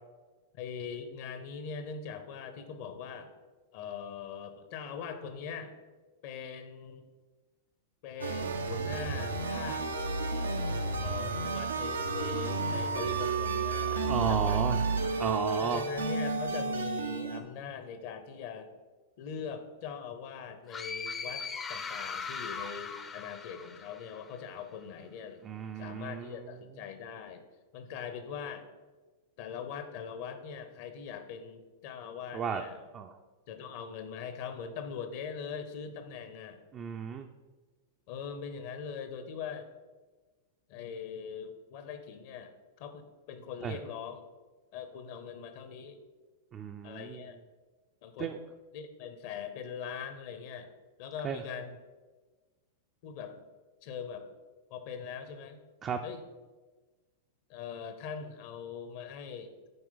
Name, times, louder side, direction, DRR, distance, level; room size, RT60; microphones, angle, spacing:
voice 1, 0.5-3.3 3.7-5.7 6.2-7.0 8.0-9.9 11.0-14.9 15.6-18.7 19.2-25.4 25.8-27.5 27.7-28.7 29.4-32.8 33.5-36.6 38.1-39.7 40.7-42.5 42.8-44.2 44.7-46.0 46.8-47.4 48.0-48.4 48.7-50.7 51.0-51.8 53.0-53.3 53.8-54.3 54.7-55.6 56.0-56.2 57.5-59.5, left 6 dB, 55° left, 8 dB, 0.8 m, -41 dB
sound 1, 8.2-17.4, right 3 dB, 90° right, 0.7 m, -31 dB
voice 2, 13.9-14.8 15.2-15.8 25.4-26.5 32.3-32.6 32.9-33.1 36.7-37.3 43.6-43.8 46.5-47.2 48.2-48.4 51.2-51.4 55.8-56.0, right 7 dB, 30° right, 4 dB, 0.4 m, -34 dB
sound 2, 20.7-24.4, left 5 dB, 25° left, 0.5 m, -39 dB
7.9 x 4.5 x 3.9 m, 1.3 s
hypercardioid pair, 100°, 0 cm